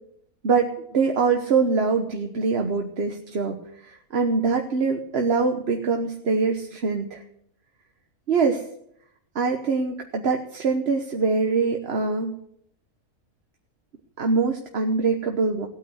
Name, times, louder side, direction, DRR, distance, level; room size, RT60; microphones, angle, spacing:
voice 1, 0.4-7.2 8.3-8.6 9.3-12.3 14.2-15.7, right 4 dB, 45° right, 4 dB, 1.3 m, -24 dB
17.0 x 9.1 x 7.9 m, 0.73 s
omnidirectional pair, 1.6 m